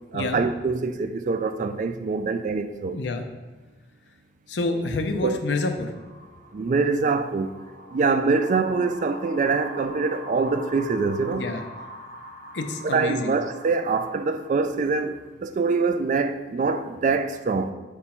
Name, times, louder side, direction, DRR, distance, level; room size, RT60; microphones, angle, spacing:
voice 1, 0.1-3.0 5.2-5.4 6.5-7.5 7.9-11.5 12.8-17.7, right 4 dB, 45° right, 0.3 m, -24 dB
voice 2, 2.8-3.2 4.5-5.9 11.3-11.6 12.5-13.3, left 3 dB, 75° left, 0.6 m, -28 dB
sound 1, 5.7-15.2, equal, 60° right, 1.5 m, -43 dB
4.5 x 4.2 x 5.6 m
head